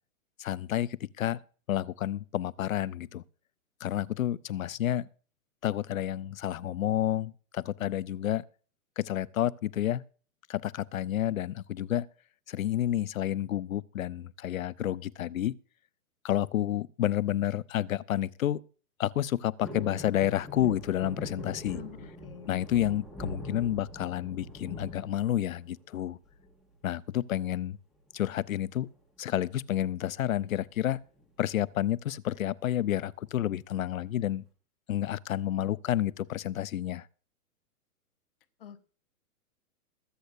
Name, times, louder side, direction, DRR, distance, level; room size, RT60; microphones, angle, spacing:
voice 1, 0.4-1.4 1.7-3.2 3.8-5.1 5.6-8.4 9.0-10.0 10.5-12.1 12.5-15.5 16.2-18.6 19.0-21.8 22.5-26.2 26.8-27.8 28.1-28.9 29.2-31.0 31.4-34.4 34.9-37.1, left 12 dB, 65° left, 0.7 m, -30 dB
sound 1, 19.6-25.8 26.2-26.8 28.1-28.5 28.8-28.9 29.2-29.5 30.3-31.2 31.7-31.8, equal, ahead, 1.3 m, -43 dB
voice 2, 21.7-22.6 38.6-38.8, left 10 dB, 40° left, 0.9 m, -47 dB
22.0 x 8.4 x 2.6 m
hypercardioid pair, 175°, 44 cm